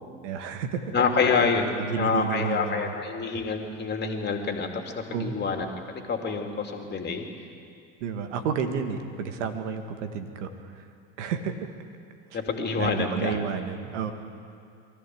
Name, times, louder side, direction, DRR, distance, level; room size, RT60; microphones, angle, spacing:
voice 1, 0.2-0.8 1.8-2.9 5.1-5.4 8.0-10.5 10.8-10.9 11.2-11.7 12.3-12.4 12.8-14.1, right 7 dB, 70° right, 7 dB, 2.1 m, -31 dB
voice 2, 0.9-4.8 5.1-5.7 6.1-7.3 12.3-13.4, left 5 dB, 25° left, 3 dB, 2.9 m, -27 dB
23.0 x 14.5 x 7.9 m, 2.3 s
hypercardioid pair, 85°, 37 cm